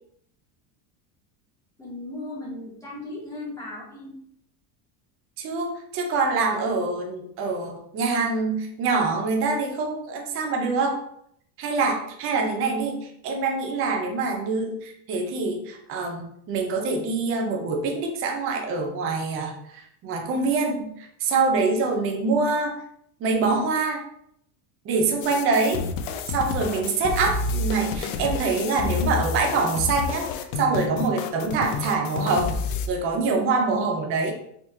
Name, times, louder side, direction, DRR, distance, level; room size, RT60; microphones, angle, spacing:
voice 1, 1.8-4.2, left 2 dB, 5° left, -9 dB, 0.8 m, -36 dB
voice 2, 5.4-11.0 11.6-22.8 23.2-24.0 24.9-25.8 26.3-32.5 32.9-34.3, right 4 dB, 30° right, 2 dB, 0.5 m, -25 dB
sound 1, 25.2-32.9, left 4 dB, 70° left, 0.6 m, -29 dB
4.2 x 2.8 x 2.6 m, 0.69 s
cardioid pair, 160°, 49 cm